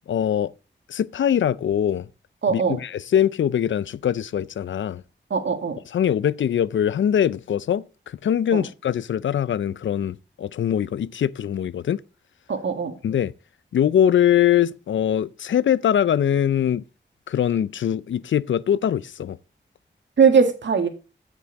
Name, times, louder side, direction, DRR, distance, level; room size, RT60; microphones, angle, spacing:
voice 1, 0.1-0.5 0.9-2.1 2.5-5.0 5.9-12.0 13.0-13.3 13.7-16.8 17.3-19.4, left 9 dB, 80° left, 0.5 m, -22 dB
voice 2, 2.4-2.8 5.3-5.8 8.5-8.6 12.5-12.9 20.2-20.9, right 6 dB, 70° right, 2.1 m, -20 dB
14.5 x 6.1 x 4.0 m
cardioid pair, 70°, 20 cm